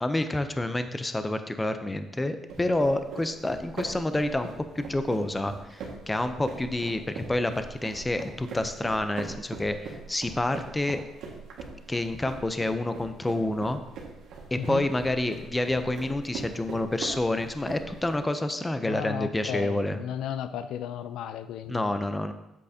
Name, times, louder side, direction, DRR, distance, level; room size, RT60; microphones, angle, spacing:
voice 1, 0.0-11.0 11.9-13.8 14.5-20.0 21.7-22.3, left 1 dB, 10° left, 9 dB, 0.5 m, -28 dB
sound 1, 2.5-18.2, right 4 dB, 75° right, 1.6 m, -41 dB
voice 2, 18.8-21.8, left 9 dB, 80° left, 11 dB, 0.4 m, -34 dB
8.3 x 8.1 x 2.7 m, 0.92 s
cardioid pair, 130°, 0 cm